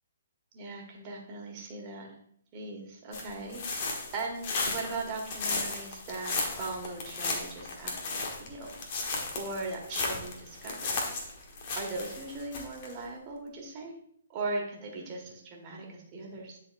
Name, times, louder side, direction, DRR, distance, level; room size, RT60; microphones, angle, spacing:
voice 1, 0.5-2.1 2.5-11.3 11.7-13.9 14.3-16.6, right 3 dB, 35° right, 0 dB, 1.7 m, -39 dB
sound 1, 3.1-12.9, left 3 dB, 45° left, 1.4 m, -35 dB
10.0 x 4.1 x 2.6 m, 0.67 s
hypercardioid pair, 135°, 0 cm